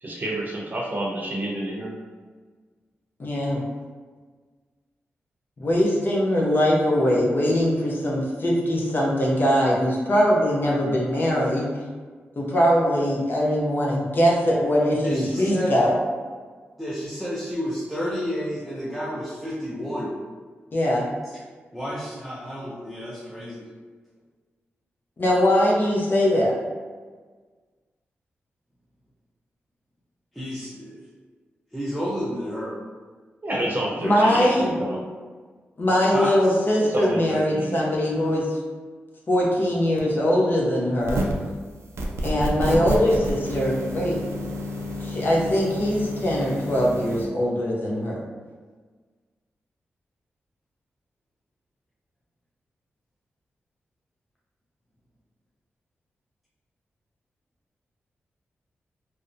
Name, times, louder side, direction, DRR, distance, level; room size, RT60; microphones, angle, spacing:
voice 1, 0.0-1.9 33.4-35.0 36.9-37.9, right 1 dB, 40° right, -3 dB, 0.7 m, -29 dB
voice 2, 3.2-3.6 5.6-11.8 12.4-15.9 20.7-21.1 25.2-26.5 34.0-34.7 35.8-38.6 39.3-41.2 42.2-44.2 45.0-48.2, equal, 45° left, -3 dB, 0.6 m, -21 dB
voice 3, 15.0-15.7 16.8-20.1 21.7-23.6 30.4-31.0 31.7-32.7 36.1-36.4, equal, ahead, -7 dB, 0.5 m, -30 dB
sound 1, 41.0-41.5 42.0-47.2, equal, 75° right, 0.4 m, -30 dB
2.7 x 2.1 x 2.4 m, 1.5 s
cardioid pair, 65°, 5 cm